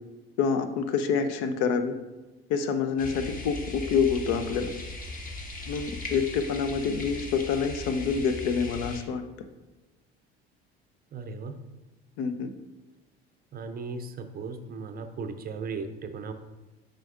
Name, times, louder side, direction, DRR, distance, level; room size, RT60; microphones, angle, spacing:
voice 1, 0.4-1.9 2.5-4.7 5.7-9.2 12.2-12.5, left 6 dB, 60° left, 9 dB, 0.6 m, -27 dB
sound 1, 3.0-9.0, left 2 dB, 25° left, 1.1 m, -38 dB
voice 2, 11.1-11.6 13.5-16.3, right 4 dB, 30° right, 8 dB, 0.5 m, -36 dB
7.4 x 5.2 x 2.4 m, 1.1 s
figure-of-eight pair, 65°, 31 cm